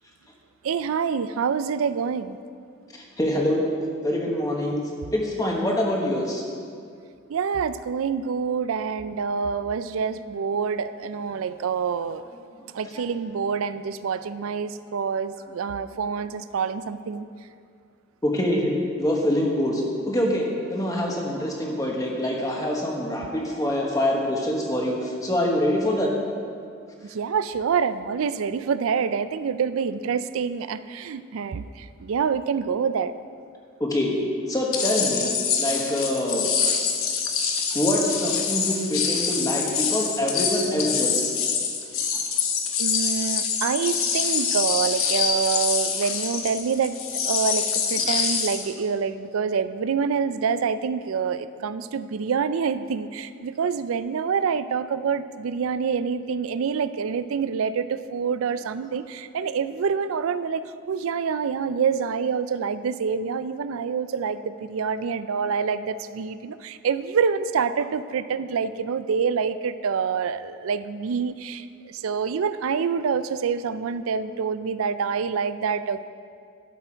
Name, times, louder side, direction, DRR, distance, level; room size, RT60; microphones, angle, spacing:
voice 1, 0.6-2.4 7.3-12.2 12.7-17.3 27.0-33.1 42.8-47.0 47.2-76.1, right 6 dB, 85° right, 14 dB, 0.4 m, -26 dB
voice 2, 3.2-3.7 4.0-6.4 12.9-13.0 18.2-18.7 19.0-26.1 33.8-34.1 34.5-36.5 37.7-41.3, left 1 dB, 15° left, -1 dB, 1.2 m, -25 dB
sound 1, 34.7-48.7, left 6 dB, 85° left, 1.0 m, -25 dB
12.5 x 6.8 x 4.5 m, 2.3 s
head